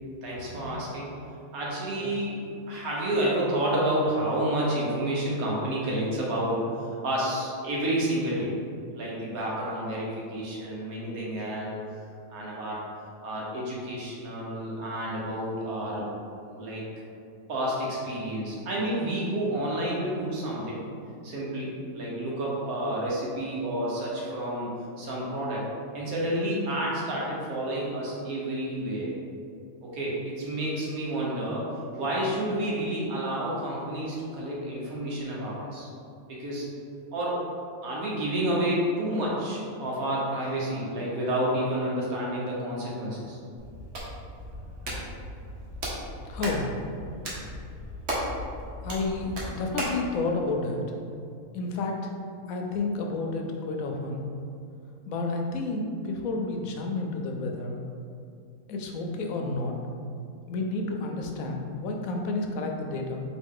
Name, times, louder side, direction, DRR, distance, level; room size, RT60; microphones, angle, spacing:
voice 1, 0.2-1.1 1.5-2.4 2.7-6.7 7.0-8.5 8.9-11.8 12.3-12.8 13.2-16.1 16.5-16.8 17.5-20.8 21.2-24.7 25.0-25.6 25.9-29.2 29.8-31.7 31.9-35.9 36.3-36.7 37.1-37.4 37.8-43.4, right 1 dB, 85° right, -5 dB, 1.5 m, -30 dB
Hands, 43.6-50.0, equal, 60° right, 1.2 m, -36 dB
voice 2, 46.3-46.7 48.8-50.8 51.5-52.1 52.5-54.3 55.1-57.8 58.7-59.8 60.5-63.2, left 3 dB, 80° left, 2 dB, 1.0 m, -30 dB
4.3 x 3.0 x 3.6 m, 2.4 s
omnidirectional pair, 1.5 m